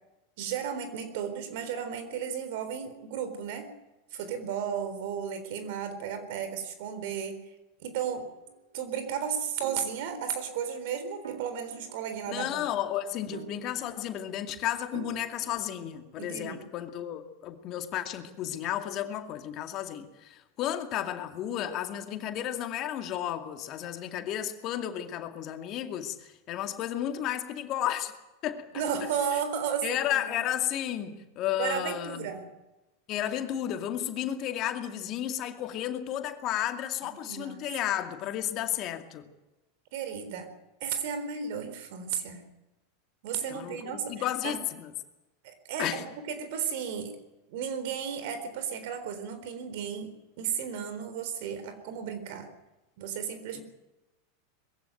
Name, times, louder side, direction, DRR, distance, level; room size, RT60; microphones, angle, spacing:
voice 1, 0.4-3.7 4.1-7.4 7.8-8.3 8.7-12.6 16.2-16.7 28.7-30.4 31.6-32.5 37.2-37.6 39.9-40.5 40.8-42.4 43.2-44.6 45.4-47.2 47.5-52.5 53.0-53.6, right 7 dB, 65° right, 10 dB, 3.9 m, -34 dB
sound 1, 8.0-8.6 9.6-10.7 11.2-12.6 13.3-14.4 14.9-16.0, right 7 dB, 80° right, 2.1 m, -47 dB
voice 2, 12.3-28.1 28.4-28.7 29.8-32.3 33.1-39.2 43.5-44.9 45.8-46.0 53.6-53.7, left 11 dB, 45° left, 6 dB, 2.3 m, -33 dB
21.5 x 15.5 x 9.2 m, 1.0 s
hypercardioid pair, 95°, 0 cm